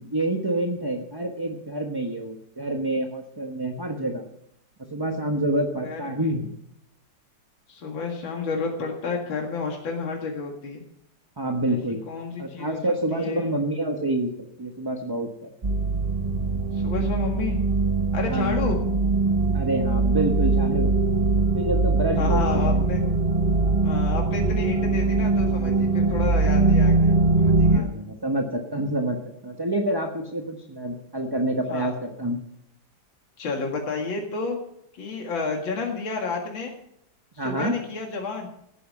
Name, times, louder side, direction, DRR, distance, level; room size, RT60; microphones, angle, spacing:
voice 1, 0.0-4.2 4.8-6.5 11.4-12.0 12.4-15.5 18.3-18.7 19.5-20.9 21.5-22.8 27.7-29.2 29.4-32.4 37.4-37.8, right 1 dB, 15° right, 3 dB, 1.1 m, -27 dB
voice 2, 5.8-6.3 7.7-10.8 11.7-11.8 12.1-12.8 13.1-13.6 16.7-17.6 18.1-18.8 22.1-23.0 23.8-27.9 31.7-31.9 33.4-34.6 34.9-36.7 37.4-38.5, left 4 dB, 85° left, 1 dB, 2.7 m, -31 dB
sound 1, 15.6-27.8, right 3 dB, 30° right, 0.7 m, -22 dB
17.0 x 10.0 x 5.4 m, 0.75 s
omnidirectional pair, 2.1 m